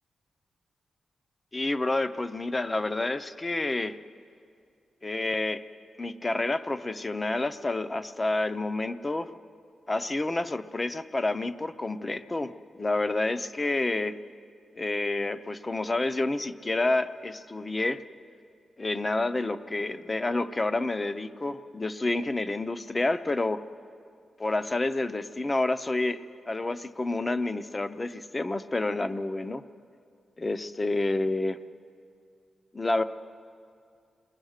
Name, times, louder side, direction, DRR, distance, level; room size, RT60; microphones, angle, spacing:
voice 1, 1.5-4.0 5.0-5.6 6.0-9.3 9.9-14.2 14.8-18.0 18.8-23.6 24.4-26.2 26.5-29.6 30.4-31.6 32.7-33.0, left 2 dB, 20° left, 12 dB, 0.6 m, -29 dB
28.5 x 20.5 x 6.5 m, 2.4 s
wide cardioid pair, 155°, 0 cm